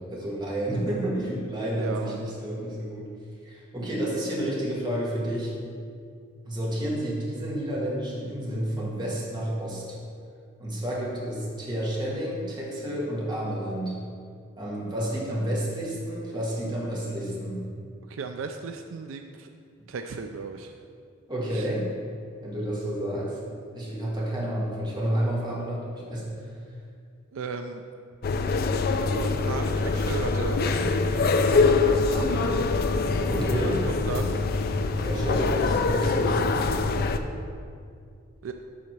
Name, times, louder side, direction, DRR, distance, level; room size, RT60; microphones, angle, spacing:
voice 1, 0.0-3.1 3.4-5.5 6.5-10.0 10.6-14.0 14.6-17.6 21.3-21.9 22.4-23.4 23.7-26.5 33.3-33.8 35.0-36.7, right 1 dB, 20° right, -6 dB, 1.8 m, -30 dB
voice 2, 1.8-2.2 18.1-19.5 19.9-20.7 21.5-21.7 27.3-27.8 29.1-32.7 33.6-34.5 38.4-38.5, right 4 dB, 75° right, 6 dB, 0.4 m, -36 dB
sound 1, 28.2-37.2, left 3 dB, 50° left, 0.4 m, -24 dB
7.7 x 4.1 x 6.0 m, 2.3 s
head